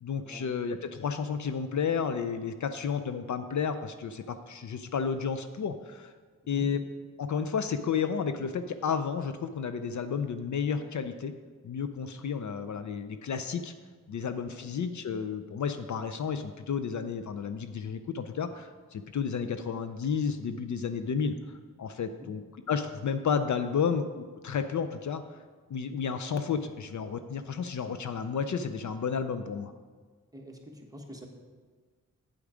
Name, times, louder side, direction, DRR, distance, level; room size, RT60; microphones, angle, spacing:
voice 1, 0.0-6.1 6.5-6.8 7.2-11.3 11.6-13.7 14.1-21.4 21.8-22.4 22.7-25.2 25.7-29.7, left 6 dB, 60° left, 9 dB, 0.5 m, -32 dB
voice 2, 30.3-31.3, equal, 10° right, 0 dB, 1.3 m, -46 dB
8.5 x 8.4 x 4.9 m, 1.5 s
wide cardioid pair, 125°, 33 cm